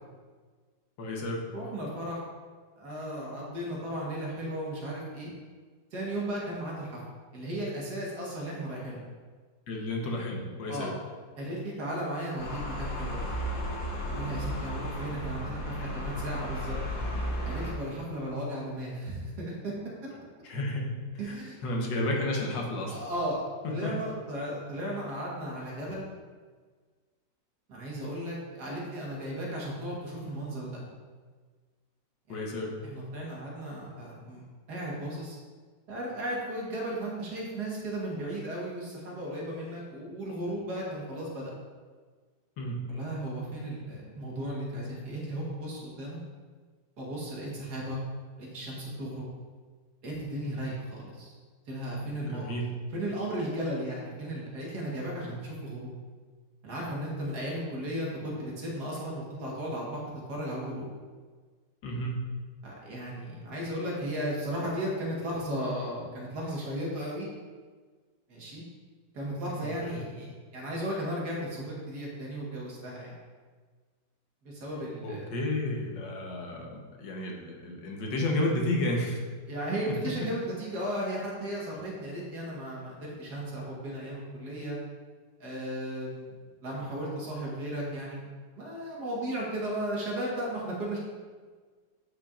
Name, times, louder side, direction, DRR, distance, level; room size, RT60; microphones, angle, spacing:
voice 1, 1.0-1.5 9.7-10.9 20.4-20.9 21.3-21.4 21.6-23.0 23.8-23.9 32.3-32.8 42.6-42.9 52.2-52.7 55.2-55.4 61.8-62.2 69.6-70.1 75.0-79.2, left 1 dB, 70° left, -1 dB, 1.7 m, -32 dB
voice 2, 1.5-2.2 2.8-5.3 5.9-7.0 7.3-9.0 10.7-10.9 11.4-13.3 14.1-16.8 17.5-19.7 21.2-21.6 22.9-23.4 23.7-26.1 27.7-30.8 32.9-34.4 34.7-35.4 35.9-41.5 42.9-46.2 47.0-48.0 48.4-49.3 50.0-51.3 51.7-52.5 52.9-55.9 56.6-60.0 60.3-60.9 62.6-67.3 68.3-68.6 69.1-73.1 74.4-75.2 79.5-84.8 85.4-86.3 86.6-88.3 88.5-91.0, right 1 dB, 60° right, -4 dB, 2.0 m, -35 dB
sound 1, 12.4-17.7, equal, 55° left, 1.4 m, -34 dB
8.3 x 5.7 x 2.5 m, 1.5 s
omnidirectional pair, 2.0 m